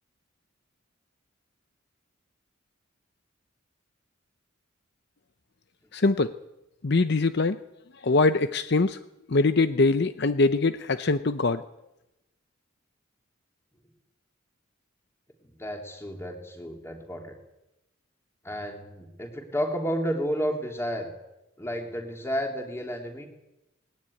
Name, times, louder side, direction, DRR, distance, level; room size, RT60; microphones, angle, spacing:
voice 1, 5.9-6.3 6.8-7.6 8.0-9.0 9.3-11.6, left 3 dB, 55° left, 11 dB, 0.7 m, -23 dB
voice 2, 15.4-17.4 18.4-21.1 21.6-23.3, equal, 15° left, 2 dB, 3.4 m, -31 dB
20.5 x 18.0 x 9.7 m, 0.92 s
head